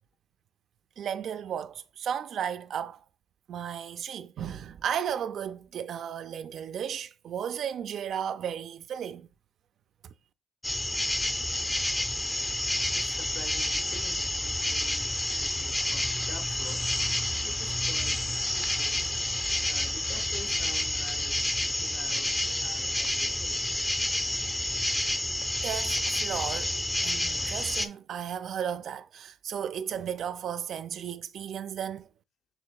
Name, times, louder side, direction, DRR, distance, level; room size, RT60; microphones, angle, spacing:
voice 1, 1.0-3.0 3.5-9.3 10.0-10.1 25.6-26.7 27.0-32.1, right 8 dB, 65° right, 0.3 m, -34 dB
sound 1, 10.6-27.9, left 1 dB, 10° left, 0.5 m, -29 dB
voice 2, 10.8-19.2 19.7-23.6, left 4 dB, 80° left, 0.8 m, -49 dB
6.5 x 3.3 x 2.3 m
cardioid pair, 90°, 0 cm